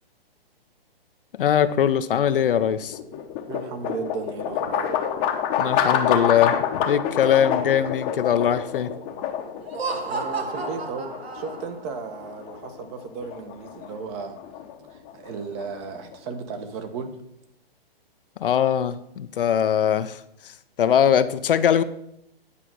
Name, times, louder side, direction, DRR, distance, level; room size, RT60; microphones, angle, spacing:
voice 1, 1.4-3.0 5.6-8.9 18.4-20.5 20.8-21.8, left 9 dB, 65° left, 12 dB, 0.7 m, -21 dB
sound 1, 2.3-16.3, left 8 dB, 25° left, 0.9 m, -28 dB
voice 2, 3.5-4.9 10.0-11.1 11.3-14.4 14.9-17.2, right 5 dB, 30° right, 8 dB, 1.1 m, -35 dB
Laughter, 9.6-11.9, right 4 dB, 90° right, 1.5 m, -32 dB
10.0 x 4.9 x 6.1 m, 0.77 s
hypercardioid pair, 145°, 30 cm